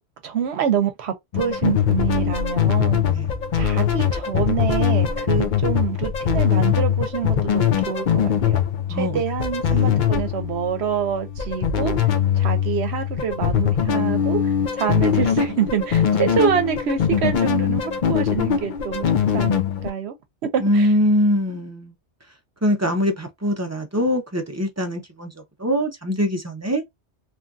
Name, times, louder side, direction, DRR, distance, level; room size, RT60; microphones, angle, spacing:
voice 1, 0.2-3.0 3.5-8.6 8.9-19.1 19.3-20.2 20.4-20.9, right 8 dB, 70° right, 1.0 m, -26 dB
sound 1, 1.3-19.9, left 8 dB, 55° left, 0.6 m, -22 dB
voice 2, 8.9-9.2 9.7-10.0 20.6-21.9 22.6-26.8, equal, 25° right, 0.4 m, -23 dB
3.0 x 2.6 x 2.3 m
omnidirectional pair, 1.2 m